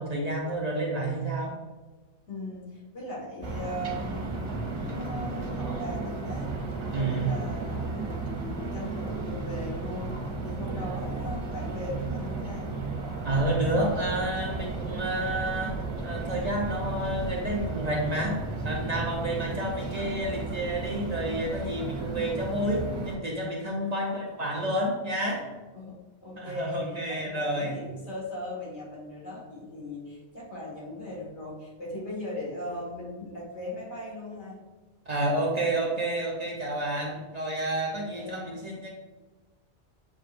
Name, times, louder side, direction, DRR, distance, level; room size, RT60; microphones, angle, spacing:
voice 1, 0.0-1.5 6.9-7.3 13.2-15.7 16.0-18.4 18.6-25.5 26.4-27.8 35.1-38.9, right 1 dB, 45° right, -2 dB, 0.7 m, -29 dB
voice 2, 2.3-6.5 6.9-10.1 10.4-12.7 23.7-23.9 25.7-34.6 37.9-38.6, left 1 dB, 80° left, -6 dB, 2.1 m, -38 dB
sound 1, 3.4-23.2, right 3 dB, 90° right, 1.2 m, -34 dB
7.3 x 2.8 x 2.5 m, 1.3 s
omnidirectional pair, 1.1 m